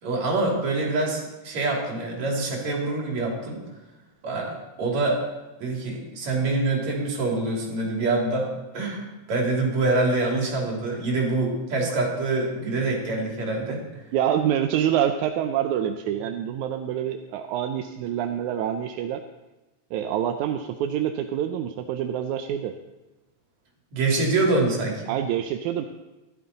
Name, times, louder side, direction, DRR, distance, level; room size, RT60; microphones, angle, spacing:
voice 1, 0.0-3.6 4.2-5.2 5.6-8.5 8.7-13.8 23.9-25.1, right 2 dB, 70° right, -2 dB, 4.2 m, -25 dB
voice 2, 14.1-19.2 19.9-22.8 25.1-25.9, right 10 dB, 90° right, 6 dB, 2.1 m, -26 dB
15.5 x 12.0 x 4.1 m, 1.1 s
omnidirectional pair, 3.3 m